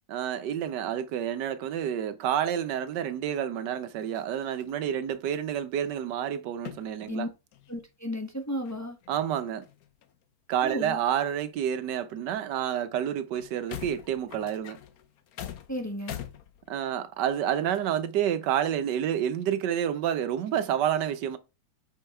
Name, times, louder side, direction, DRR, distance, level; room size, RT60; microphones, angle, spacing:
voice 1, 0.1-7.3 9.1-9.6 10.5-14.8 16.7-21.4, right 9 dB, 70° right, 1.3 m, -29 dB
sound 1, 4.0-4.8 5.1-5.9 6.7-7.2 7.5-7.8 8.3-8.4 8.6-10.2 10.9-12.0 12.5-12.6 13.0-13.1 13.3-17.0 17.7-17.9, left 10 dB, 60° left, 1.1 m, -44 dB
voice 2, 7.7-9.0 10.6-11.0 15.7-16.2, equal, 10° left, 0.8 m, -34 dB
5.6 x 5.2 x 4.4 m
omnidirectional pair, 2.1 m